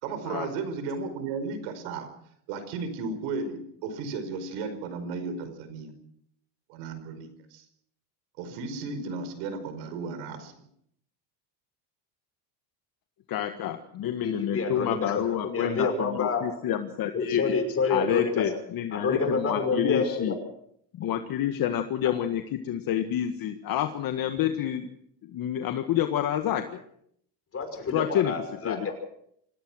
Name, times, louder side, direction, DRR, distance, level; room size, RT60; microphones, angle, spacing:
voice 1, 0.0-2.1 2.5-5.9 6.7-7.6 8.4-10.5, right 4 dB, 85° right, 10 dB, 5.1 m, -34 dB
voice 2, 13.3-17.6 17.9-20.4 21.0-24.9 25.2-26.6 27.9-28.3 28.6-28.9, left 10 dB, 50° left, 7 dB, 1.7 m, -28 dB
voice 3, 14.2-16.4 17.1-18.4 18.9-20.3 27.5-28.9, left 4 dB, 30° left, 7 dB, 5.8 m, -28 dB
26.0 x 17.0 x 6.3 m, 0.70 s
cardioid pair, 125°, 45 cm